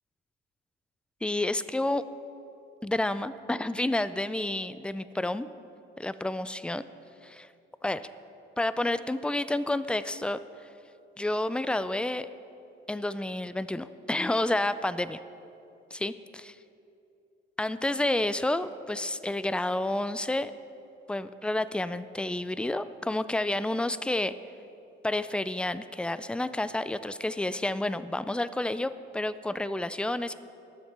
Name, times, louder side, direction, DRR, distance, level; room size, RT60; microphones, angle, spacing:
voice 1, 1.2-2.0 2.8-5.5 6.0-6.8 7.2-7.5 7.8-8.1 8.6-10.7 11.2-12.3 12.9-15.2 15.9-16.6 17.6-20.5 21.1-24.3 25.0-30.3, left 1 dB, 5° left, 14 dB, 0.3 m, -30 dB
19.0 x 7.1 x 3.4 m, 2.7 s
cardioid pair, 90°, 20 cm